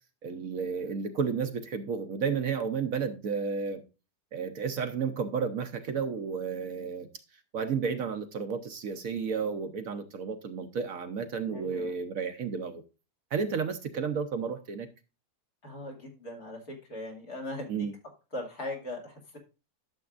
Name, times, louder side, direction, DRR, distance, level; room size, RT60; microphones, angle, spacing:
voice 1, 0.2-3.8 4.3-7.1 7.5-12.8 13.3-14.9 17.7-17.9, right 6 dB, 60° right, 8 dB, 1.1 m, -32 dB
voice 2, 11.5-11.9 15.6-17.9 18.3-19.4, left 1 dB, 65° left, 0 dB, 2.9 m, -39 dB
12.0 x 7.0 x 2.5 m, 0.30 s
omnidirectional pair, 1.8 m